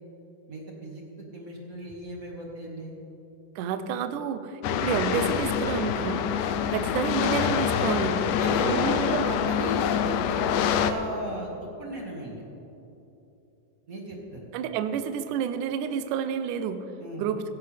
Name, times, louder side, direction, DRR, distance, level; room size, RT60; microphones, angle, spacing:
voice 1, 0.5-2.9 8.1-9.1 9.5-9.9 10.2-12.4 13.9-14.5 17.0-17.3, equal, 35° right, -2 dB, 1.3 m, -37 dB
voice 2, 3.6-6.3 6.7-8.2 8.6-9.4 14.5-16.9 17.2-17.5, right 7 dB, 75° right, 9 dB, 1.9 m, -29 dB
sound 1, 4.6-10.9, left 8 dB, 80° left, 2.0 m, -25 dB
16.5 x 16.0 x 3.4 m, 2.9 s
omnidirectional pair, 4.2 m